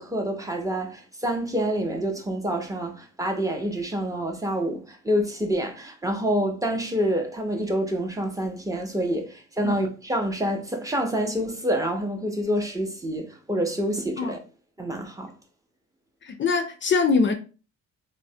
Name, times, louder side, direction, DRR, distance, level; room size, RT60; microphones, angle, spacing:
voice 1, 0.0-14.4 14.8-15.3, equal, 10° right, 0.5 m, -27 dB
voice 2, 16.2-17.3, left 4 dB, 40° left, 0.4 m, -23 dB
3.1 x 2.0 x 2.6 m
cardioid pair, 90°, 30 cm